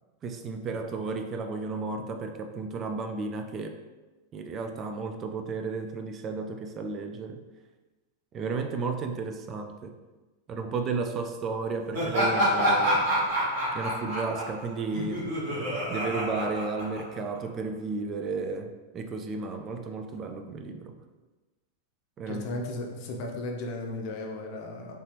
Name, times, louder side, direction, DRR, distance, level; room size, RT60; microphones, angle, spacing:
voice 1, 0.2-3.8 4.3-7.4 8.3-10.0 10.5-13.1 13.7-15.3 15.9-21.0 22.2-22.5, right 4 dB, 30° right, 5 dB, 0.3 m, -33 dB
Laughter, 11.9-17.4, equal, 55° right, 1.2 m, -27 dB
voice 2, 22.3-25.0, left 2 dB, 45° left, 1 dB, 0.6 m, -35 dB
3.2 x 2.8 x 3.3 m, 1.2 s
figure-of-eight pair, 90°, 0 cm